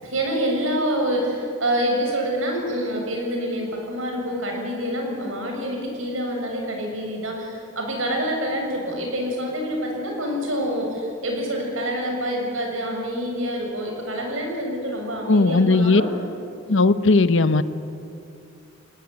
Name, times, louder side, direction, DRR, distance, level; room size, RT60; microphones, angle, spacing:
voice 1, 0.0-16.1, equal, 80° right, 1 dB, 7.1 m, -26 dB
voice 2, 15.3-16.0 16.7-17.6, left 3 dB, 65° left, 13 dB, 1.0 m, -17 dB
26.0 x 19.0 x 9.9 m, 2.5 s
head